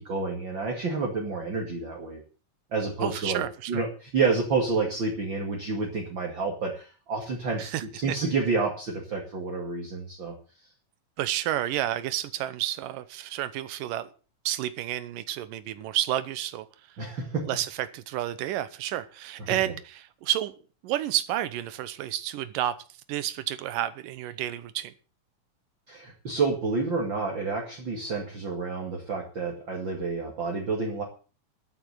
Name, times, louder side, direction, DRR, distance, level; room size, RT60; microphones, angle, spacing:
voice 1, 0.0-2.2 2.7-7.7 8.0-10.3 17.0-17.5 25.9-31.0, right 4 dB, 40° right, 1 dB, 2.7 m, -29 dB
voice 2, 3.0-3.8 7.6-8.2 11.2-14.1 14.5-17.0 17.5-20.5 20.8-22.8 23.1-24.9, right 13 dB, 85° right, 14 dB, 2.6 m, -30 dB
12.5 x 8.8 x 7.9 m, 0.37 s
omnidirectional pair, 3.7 m